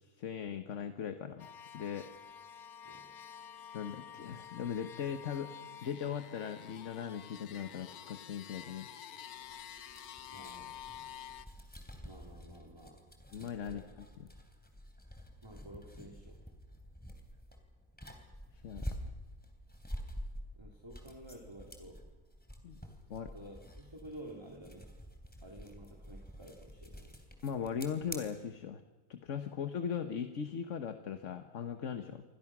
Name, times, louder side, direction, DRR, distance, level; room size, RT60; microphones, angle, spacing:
voice 1, 0.0-2.1 3.7-5.5 5.8-8.9 13.3-14.3 18.6-19.0 22.6-22.8 23.1-23.3 27.4-28.8 29.1-32.2, left 7 dB, 60° left, 8 dB, 1.4 m, -39 dB
sound 1, 1.4-11.5, left 9 dB, 85° left, 1.4 m, -49 dB
sound 2, 9.3-28.2, equal, 5° left, 3.3 m, -48 dB
voice 2, 10.3-11.2 12.0-13.0 13.6-13.8 15.4-16.4 20.6-22.0 23.1-24.9 25.4-27.2, right 1 dB, 15° right, 0 dB, 3.1 m, -51 dB
28.0 x 24.5 x 6.1 m, 1.2 s
omnidirectional pair, 1.5 m